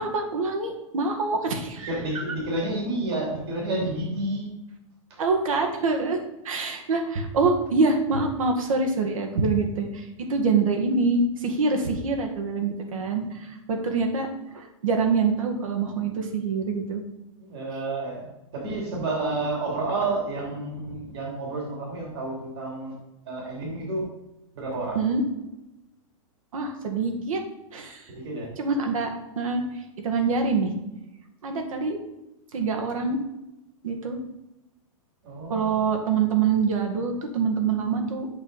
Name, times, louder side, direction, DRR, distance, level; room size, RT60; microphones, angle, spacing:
voice 1, 0.0-1.9 5.2-6.2 6.4-10.0 10.3-13.2 13.7-14.3 14.5-17.0 24.9-25.2 26.5-27.4 27.7-28.0 28.6-29.1 29.4-29.6 30.0-30.7 31.4-32.0 32.5-33.2 33.8-34.2 35.5-38.3, right 4 dB, 75° right, 4 dB, 1.9 m, -25 dB
voice 2, 1.8-4.5 17.4-22.9 23.2-24.1 24.5-25.0 28.1-28.5 35.2-36.0, right 2 dB, 50° right, -2 dB, 3.1 m, -30 dB
8.7 x 6.4 x 4.1 m, 0.94 s
supercardioid pair, 175°, 17 cm